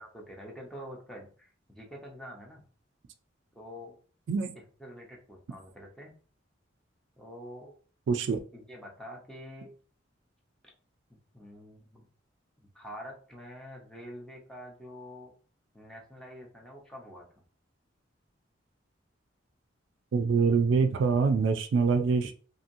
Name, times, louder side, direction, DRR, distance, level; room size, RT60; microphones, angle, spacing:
voice 1, 0.0-2.6 3.5-4.0 4.5-6.1 7.2-7.7 8.5-9.7 11.1-12.1 12.6-15.3 15.7-17.2, equal, 5° left, -2 dB, 0.7 m, -46 dB
voice 2, 8.1-8.4 20.1-22.3, right 5 dB, 65° right, 7 dB, 0.3 m, -25 dB
2.8 x 2.6 x 2.6 m, 0.41 s
head